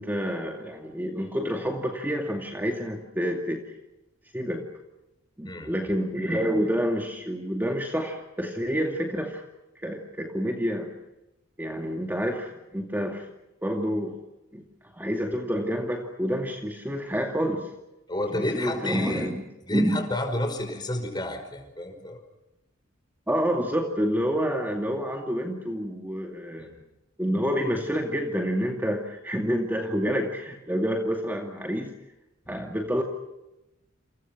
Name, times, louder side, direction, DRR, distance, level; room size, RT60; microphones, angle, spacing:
voice 1, 0.0-3.6 4.3-4.6 5.4-9.4 9.8-10.9 11.6-13.2 13.6-14.2 14.5-17.7 18.3-19.4 19.7-20.0 23.3-26.7 27.2-31.9 32.5-33.0, equal, 10° right, 2 dB, 2.3 m, -28 dB
voice 2, 18.1-19.3 19.7-22.2 26.6-26.8 32.5-32.6, left 1 dB, 20° left, 4 dB, 5.4 m, -31 dB
29.5 x 28.5 x 6.1 m, 0.93 s
head